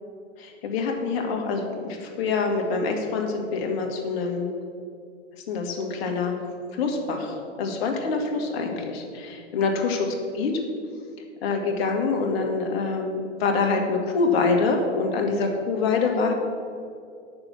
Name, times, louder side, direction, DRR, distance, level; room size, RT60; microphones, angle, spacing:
voice 1, 0.4-4.5 5.5-6.4 6.7-10.0 10.3-10.5 11.4-16.3, left 4 dB, 55° left, 3 dB, 2.2 m, -25 dB
9.1 x 6.8 x 7.2 m, 2.4 s
hypercardioid pair, 120°, 36 cm